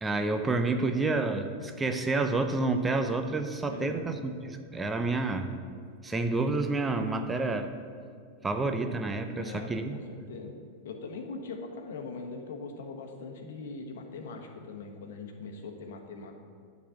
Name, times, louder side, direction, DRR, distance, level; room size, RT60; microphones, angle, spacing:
voice 1, 0.0-5.5 6.0-7.7 8.4-10.0, right 3 dB, 15° right, 6 dB, 0.6 m, -29 dB
voice 2, 3.7-4.1 9.3-10.6 10.8-16.3, left 4 dB, 75° left, 3 dB, 1.2 m, -41 dB
10.0 x 4.1 x 7.1 m, 2.1 s
hypercardioid pair, 105°, 0 cm